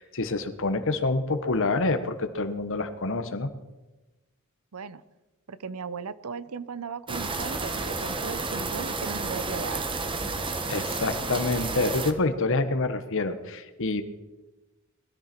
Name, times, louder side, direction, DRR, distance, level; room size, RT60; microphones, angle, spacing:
voice 1, 0.0-3.5 10.7-14.0, left 3 dB, 65° left, 10 dB, 1.2 m, -27 dB
voice 2, 4.7-5.0 5.5-9.9, right 5 dB, 85° right, 16 dB, 0.7 m, -37 dB
sound 1, 7.1-12.1, right 3 dB, 25° right, 1.2 m, -31 dB
20.5 x 13.0 x 4.5 m, 1.1 s
head